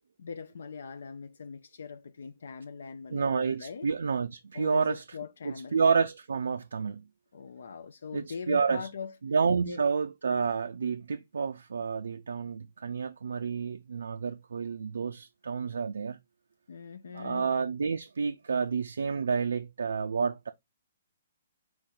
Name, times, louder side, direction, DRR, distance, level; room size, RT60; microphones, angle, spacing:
voice 1, 0.2-3.9 4.5-5.8 7.3-9.1 9.6-9.8 16.7-17.5, left 6 dB, 65° left, 0.4 m, -41 dB
voice 2, 3.1-5.0 5.7-7.0 8.1-8.9 9.2-16.2 17.1-20.5, right 5 dB, 65° right, 0.3 m, -29 dB
4.5 x 2.8 x 3.8 m
figure-of-eight pair, 125°, 0 cm